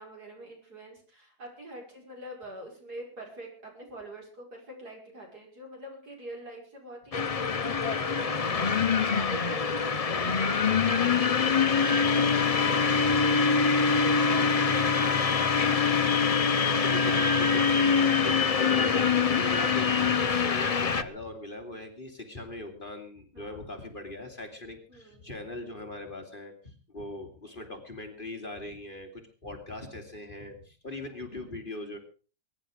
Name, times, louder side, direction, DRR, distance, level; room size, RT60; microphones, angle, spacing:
voice 1, 0.0-14.9 23.3-23.6 24.9-25.3, right 1 dB, 70° right, 1 dB, 6.5 m, -45 dB
sound 1, 7.1-21.0, left 5 dB, 50° left, 0.4 m, -24 dB
voice 2, 16.6-32.0, left 1 dB, 30° left, 3 dB, 2.6 m, -41 dB
22.0 x 10.5 x 5.0 m, 0.38 s
omnidirectional pair, 1.8 m